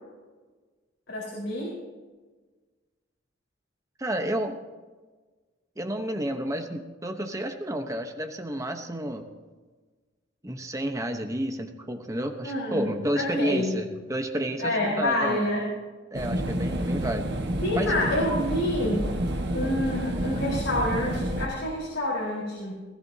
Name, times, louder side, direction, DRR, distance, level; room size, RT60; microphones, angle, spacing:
voice 1, 1.1-1.7 12.4-12.9 13.2-13.7 14.6-15.6 17.6-19.1 19.5-22.8, left 1 dB, 90° left, -5 dB, 4.5 m, -27 dB
voice 2, 4.0-4.6 5.8-9.2 10.4-15.4 16.1-17.3 17.7-18.0, right 1 dB, 15° right, 5 dB, 1.0 m, -30 dB
sound 1, 16.1-21.5, right 1 dB, 60° right, 1.5 m, -29 dB
20.0 x 15.0 x 2.8 m, 1.3 s
head